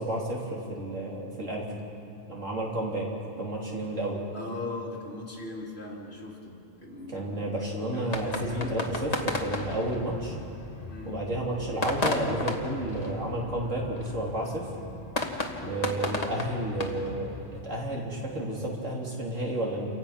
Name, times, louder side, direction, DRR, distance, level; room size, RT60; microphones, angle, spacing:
voice 1, 0.0-1.7 2.3-3.1 3.4-4.2 7.1-10.4 11.1-14.7 15.6-17.4 17.6-19.9, right 1 dB, 70° right, -3 dB, 3.6 m, -31 dB
voice 2, 4.3-9.0 10.9-11.1, left 2 dB, 50° left, -3 dB, 3.7 m, -39 dB
sound 1, 8.1-17.6, left 2 dB, 30° left, 1.6 m, -35 dB
29.0 x 16.5 x 5.9 m, 2.8 s
omnidirectional pair, 1.3 m